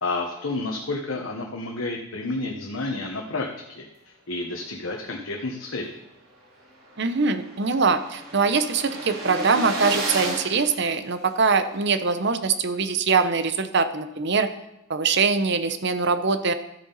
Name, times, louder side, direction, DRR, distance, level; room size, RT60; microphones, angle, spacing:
voice 1, 0.0-6.0, left 2 dB, 70° left, 0 dB, 1.2 m, -30 dB
sound 1, 6.0-6.1 6.4-6.5 6.7-11.6, right 1 dB, 75° right, 4.0 m, -33 dB
voice 2, 7.0-14.5 14.9-16.5, right 4 dB, 55° right, 10 dB, 0.8 m, -23 dB
13.0 x 7.8 x 4.1 m, 0.87 s
head